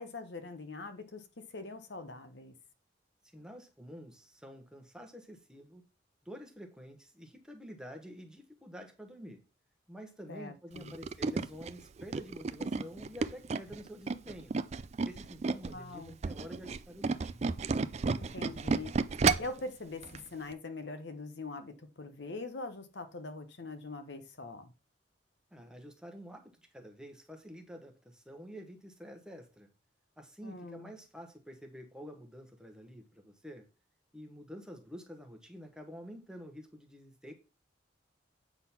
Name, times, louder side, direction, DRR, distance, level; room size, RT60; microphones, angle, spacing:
voice 1, 0.0-2.5 10.3-10.9 15.7-16.2 18.2-18.9 19.4-24.7 30.4-30.9, left 3 dB, 60° left, 0.9 m, -43 dB
voice 2, 3.3-5.8 6.2-9.4 9.9-14.6 15.0-17.5 25.5-29.7 30.2-33.7 34.1-37.3, equal, 5° right, 1.0 m, -48 dB
Tools, 10.8-15.7 16.1-19.6 20.0-20.2 20.5-20.6, right 4 dB, 35° right, 0.3 m, -32 dB
8.1 x 3.8 x 5.8 m
head